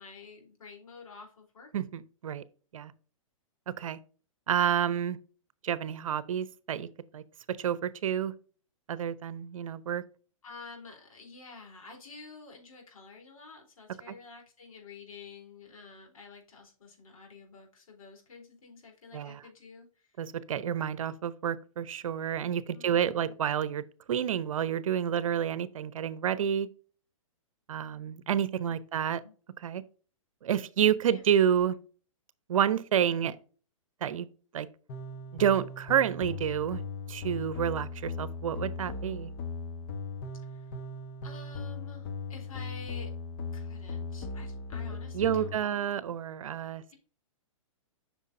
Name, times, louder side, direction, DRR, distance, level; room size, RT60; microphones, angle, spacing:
voice 1, 0.0-1.7 10.4-20.1 22.7-23.3 28.6-29.3 31.1-31.2 40.5-40.7 41.2-43.1 43.5-45.9, left 4 dB, 80° left, 3.7 m, -49 dB
voice 2, 1.7-2.4 2.7-2.9 3.8-4.0 4.5-5.2 5.6-6.9 7.1-8.3 8.9-10.0 14.1-14.2 19.1-19.4 20.2-26.7 27.7-29.2 29.6-29.8 30.4-31.8 32.5-33.4 34.0-34.3 34.5-34.7 35.3-36.8 37.1-39.3 45.1-46.8, right 9 dB, 70° right, 0.7 m, -29 dB
sound 1, 34.9-45.5, left 3 dB, 40° left, 1.1 m, -38 dB
8.1 x 6.0 x 2.7 m
hypercardioid pair, 130°, 18 cm